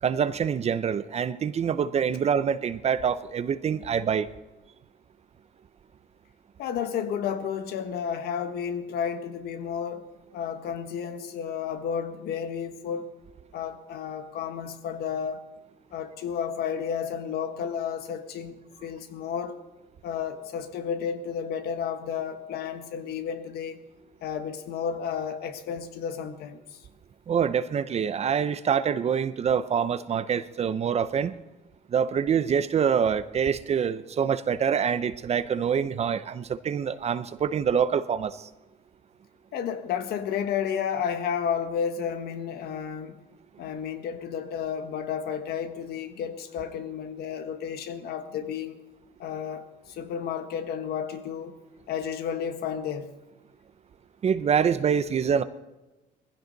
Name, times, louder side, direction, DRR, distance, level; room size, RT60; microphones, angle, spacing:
voice 1, 0.0-4.3 27.3-31.4 31.9-38.5 54.2-55.4, right 7 dB, 40° right, 0.7 m, -25 dB
voice 2, 6.6-13.1 13.5-15.4 15.9-19.6 20.0-23.8 24.2-26.8 39.5-43.2 43.6-48.8 49.2-51.6 51.9-53.1, left 7 dB, 70° left, 1.5 m, -32 dB
20.5 x 15.5 x 4.0 m
cardioid pair, 110°, 17 cm